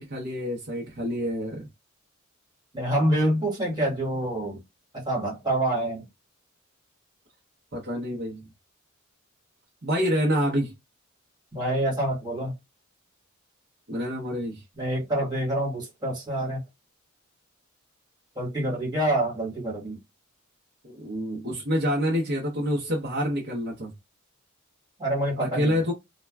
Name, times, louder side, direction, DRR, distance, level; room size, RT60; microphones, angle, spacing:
voice 1, 0.0-1.7 7.7-8.5 9.8-10.7 13.9-14.6 20.8-23.9 25.4-25.9, equal, 50° right, 0.8 m, -27 dB
voice 2, 2.7-4.6 4.9-6.0 11.5-12.5 14.8-16.6 18.3-20.0 25.0-25.7, right 1 dB, 20° right, 1.3 m, -26 dB
3.1 x 2.2 x 2.3 m
head